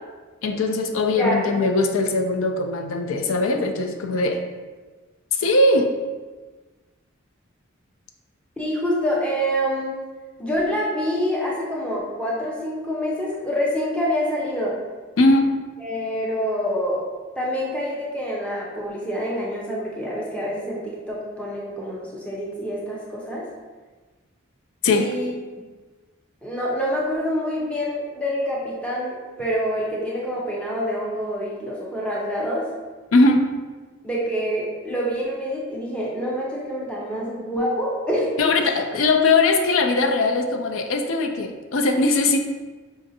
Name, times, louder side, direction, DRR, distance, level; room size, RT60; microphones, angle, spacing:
voice 1, 0.4-4.4 5.4-5.9 15.2-15.5 24.8-25.1 33.1-33.4 38.4-42.4, left 2 dB, 75° left, 5 dB, 0.4 m, -20 dB
voice 2, 8.6-10.0 10.4-14.8 15.8-17.1 17.4-23.4 24.9-25.3 26.4-32.7 34.0-38.8, equal, 5° left, -5 dB, 0.6 m, -26 dB
4.9 x 2.6 x 2.6 m, 1.3 s
head